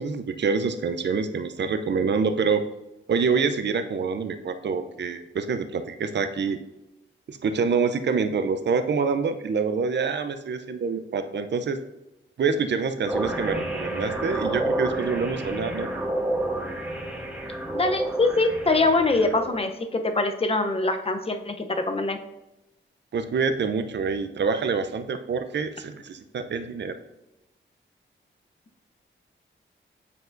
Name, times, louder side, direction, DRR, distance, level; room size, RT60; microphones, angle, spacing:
voice 1, 0.0-2.6 3.1-6.6 7.3-11.8 12.4-15.9 23.1-27.0, right 5 dB, 60° right, 9 dB, 0.6 m, -26 dB
sound 1, 13.1-19.6, right 1 dB, 5° right, 1.2 m, -30 dB
voice 2, 17.7-22.2, left 2 dB, 30° left, 6 dB, 0.7 m, -23 dB
8.1 x 4.7 x 2.6 m, 0.94 s
cardioid pair, 80°, 20 cm